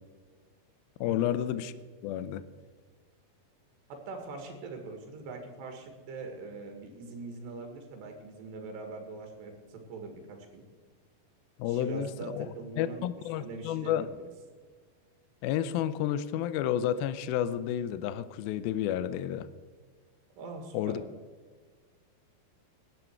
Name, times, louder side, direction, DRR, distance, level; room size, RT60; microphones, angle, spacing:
voice 1, 1.0-1.7 2.0-2.4 11.6-12.5 12.8-14.1 15.4-19.5 20.7-21.0, left 11 dB, 80° left, 14 dB, 2.3 m, -31 dB
voice 2, 3.9-10.6 11.7-13.1 13.4-14.2 20.4-21.0, right 3 dB, 90° right, 4 dB, 3.9 m, -42 dB
17.5 x 11.5 x 4.5 m, 1.5 s
omnidirectional pair, 4.7 m